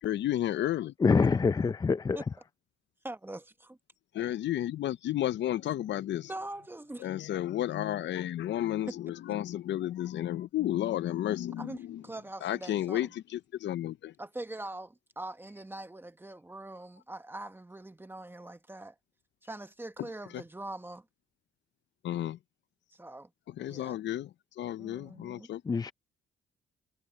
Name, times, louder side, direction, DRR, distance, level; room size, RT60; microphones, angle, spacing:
voice 1, 0.0-0.9 4.1-6.3 7.0-12.0 12.4-14.1 20.3-20.4 22.0-22.4 23.5-25.6, left 12 dB, 65° left, 0.6 m, -32 dB
voice 2, 1.0-2.2 25.7-25.9, left 5 dB, 20° left, 0.4 m, -25 dB
voice 3, 3.0-3.8 6.3-7.1 8.9-9.0 11.6-13.1 14.2-18.9 19.4-21.0 22.9-23.3 23.7-24.0 24.8-25.5, right 1 dB, 10° right, 1.1 m, -43 dB
cardioid pair, 90°, 20 cm